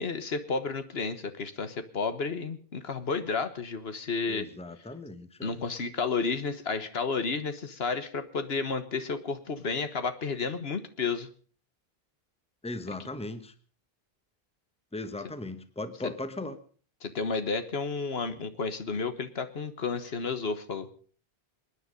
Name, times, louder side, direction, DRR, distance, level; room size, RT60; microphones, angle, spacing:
voice 1, 0.0-4.5 5.4-11.3 17.0-20.9, left 4 dB, 70° left, 10 dB, 1.5 m, -31 dB
voice 2, 4.3-5.5 12.6-13.5 14.9-16.6, left 2 dB, 5° left, 10 dB, 1.1 m, -38 dB
27.0 x 9.9 x 5.2 m, 0.43 s
omnidirectional pair, 1.1 m